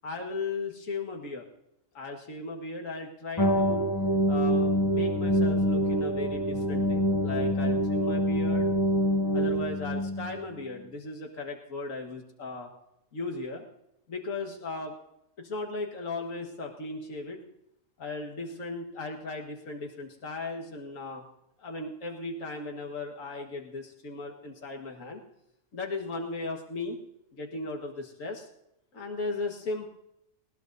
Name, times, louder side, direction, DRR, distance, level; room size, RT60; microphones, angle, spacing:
voice 1, 0.0-1.5 1.9-3.9 4.3-8.7 9.3-12.7 13.1-13.7 14.1-14.9 15.4-17.4 18.0-21.2 21.6-25.2 25.7-27.0 27.3-28.5 28.9-29.9, left 3 dB, 80° left, 1 dB, 2.0 m, -36 dB
sound 1, 3.4-10.4, equal, 35° left, 0.4 m, -26 dB
20.0 x 20.0 x 2.7 m, 0.82 s
omnidirectional pair, 1.3 m